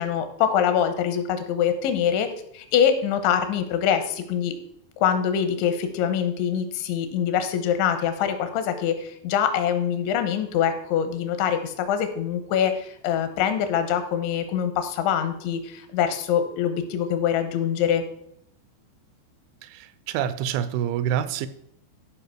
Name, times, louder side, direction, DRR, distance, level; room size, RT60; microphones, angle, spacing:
voice 1, 0.0-2.3 2.5-4.6 5.0-18.0, left 8 dB, 85° left, 8 dB, 3.4 m, -24 dB
voice 2, 19.6-21.5, right 10 dB, 85° right, 14 dB, 3.0 m, -27 dB
13.5 x 4.9 x 6.0 m, 0.72 s
omnidirectional pair, 5.3 m